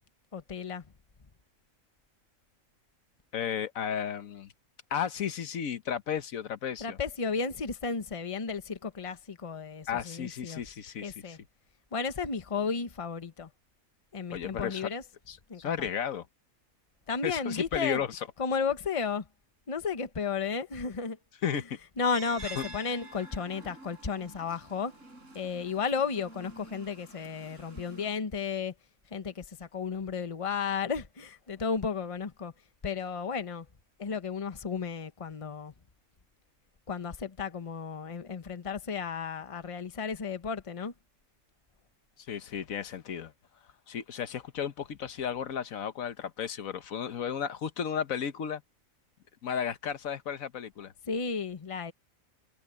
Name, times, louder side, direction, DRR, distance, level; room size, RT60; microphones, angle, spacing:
voice 1, 0.3-0.9 6.8-11.4 11.9-13.5 14.1-15.0 15.5-15.9 17.1-18.0 18.4-19.3 19.7-21.2 21.5-21.6 22.0-25.0 25.3-28.7 29.1-32.5 32.8-33.7 34.0-35.7 36.9-40.9 51.1-51.9, left 5 dB, 25° left, 1.0 m, -33 dB
voice 2, 3.3-4.5 4.9-7.0 9.9-11.1 14.3-14.9 15.3-16.3 17.2-18.2 21.4-21.8 22.6-22.7 42.3-43.3 43.9-48.6 49.4-50.9, left 8 dB, 80° left, 1.4 m, -33 dB
sound 1, 22.1-28.1, right 2 dB, 65° right, 7.3 m, -48 dB
omnidirectional pair, 1.4 m